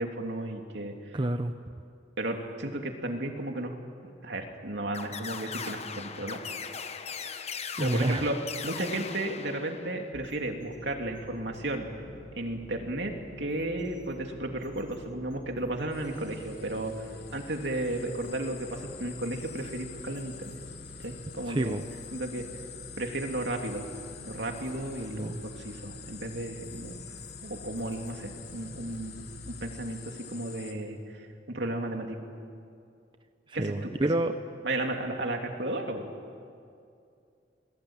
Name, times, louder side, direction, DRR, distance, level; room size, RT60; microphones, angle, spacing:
voice 1, 0.0-1.2 2.2-3.7 4.2-6.4 7.8-8.4 8.6-11.9 12.3-20.6 21.0-21.8 22.1-22.5 23.0-23.9 24.2-27.0 27.4-32.2 33.5-33.9 34.6-36.0, right 1 dB, 70° right, 3 dB, 3.0 m, -34 dB
voice 2, 1.1-1.5 7.8-8.3 21.5-21.9 25.1-25.4 33.5-34.3, right 1 dB, 25° right, 8 dB, 0.7 m, -28 dB
sound 1, 4.9-10.1, left 6 dB, 35° left, 1.1 m, -39 dB
sound 2, 10.1-29.4, equal, 80° left, 4.8 m, -50 dB
sound 3, 15.9-30.7, left 8 dB, 60° left, 3.0 m, -47 dB
29.0 x 21.0 x 9.1 m, 2.4 s
head